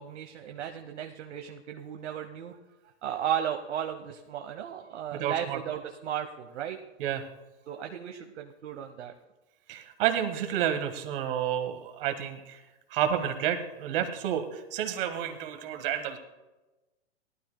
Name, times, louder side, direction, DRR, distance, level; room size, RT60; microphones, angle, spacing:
voice 1, 0.0-2.6 3.0-6.8 7.7-9.1, right 9 dB, 75° right, 5 dB, 1.0 m, -35 dB
voice 2, 5.1-5.6 7.0-7.2 9.7-12.6 12.9-16.2, right 10 dB, 50° right, 7 dB, 1.6 m, -30 dB
18.5 x 12.5 x 2.2 m, 1.1 s
hypercardioid pair, 135°, 35 cm